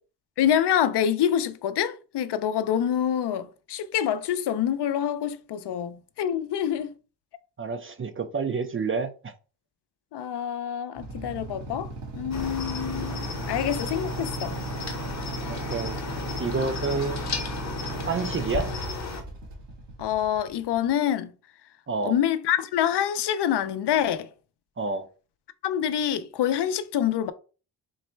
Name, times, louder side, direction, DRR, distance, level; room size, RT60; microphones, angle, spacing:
voice 1, 0.4-6.9 10.1-14.6 20.0-21.3 22.0-24.3 25.6-27.3, left 9 dB, 75° left, 0.5 m, -26 dB
voice 2, 7.6-9.3 15.5-16.0 16.4-17.2 18.1-18.7 21.9-22.2 24.8-25.1, right 4 dB, 30° right, 0.4 m, -29 dB
Motorcycle / Idling, 11.0-20.9, right 3 dB, 85° right, 1.4 m, -36 dB
Cricket, 12.3-19.2, left 4 dB, 40° left, 0.8 m, -34 dB
3.9 x 2.1 x 4.4 m
wide cardioid pair, 135°, 41 cm